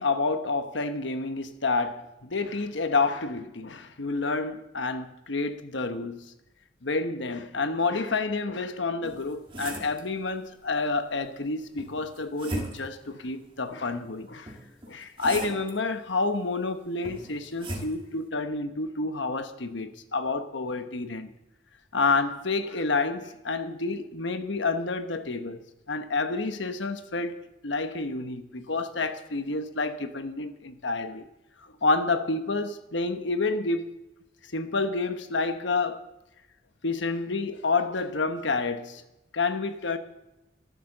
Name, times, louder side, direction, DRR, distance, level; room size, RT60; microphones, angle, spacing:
voice 1, 0.0-6.2 6.8-14.5 14.9-21.3 21.9-25.6 25.9-31.3 31.6-33.8 34.5-36.0 36.8-39.0 39.3-40.0, left 3 dB, 70° left, 1.1 m, -29 dB
sound 1, 9.0-10.1 11.8-13.0 14.5-15.7 17.0-18.0, right 1 dB, 25° right, 2.1 m, -37 dB
13.5 x 12.0 x 6.6 m
head